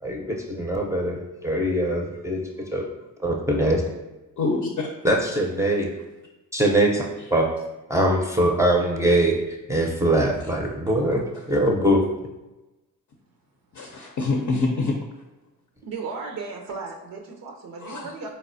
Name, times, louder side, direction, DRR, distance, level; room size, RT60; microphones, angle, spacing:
voice 1, 0.0-2.9 3.2-3.8 5.0-5.9 6.5-7.5 7.9-9.4 9.7-12.1, right 1 dB, 10° right, -1 dB, 0.5 m, -22 dB
voice 2, 4.4-4.9 13.7-14.9 17.8-18.1, left 3 dB, 55° left, 0 dB, 0.5 m, -25 dB
voice 3, 15.8-18.3, right 4 dB, 75° right, 2 dB, 0.5 m, -35 dB
4.0 x 2.1 x 2.5 m, 1.1 s
cardioid pair, 55°, 35 cm